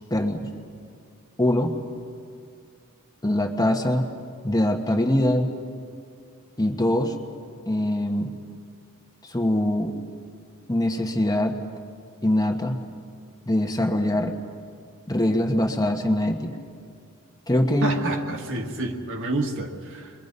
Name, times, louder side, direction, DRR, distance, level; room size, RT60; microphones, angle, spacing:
voice 1, 0.1-0.4 1.4-1.7 3.2-4.1 4.4-5.5 6.6-7.1 7.7-8.3 9.3-9.9 10.7-11.6 12.2-12.7 13.5-14.4 15.1-16.5 17.5-18.0, left 1 dB, 15° left, 3 dB, 1.4 m, -23 dB
voice 2, 17.8-20.1, right 2 dB, 60° right, 2 dB, 2.0 m, -29 dB
29.5 x 22.5 x 5.4 m, 2.3 s
head